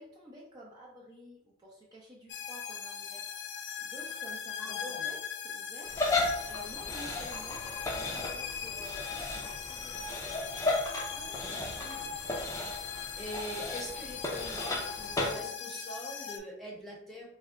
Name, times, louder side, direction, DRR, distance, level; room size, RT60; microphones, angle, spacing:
voice 1, 0.0-3.3 3.6-6.0 6.4-10.1, equal, 25° right, -6 dB, 0.7 m, -51 dB
sound 1, 2.3-16.4, left 7 dB, 75° left, 0.4 m, -40 dB
voice 2, 4.6-5.1 11.1-12.2 12.8-17.3, equal, ahead, -4 dB, 1.0 m, -44 dB
sound 2, 5.9-15.3, left 2 dB, 20° left, 0.6 m, -35 dB
3.3 x 2.2 x 3.7 m, 0.80 s
head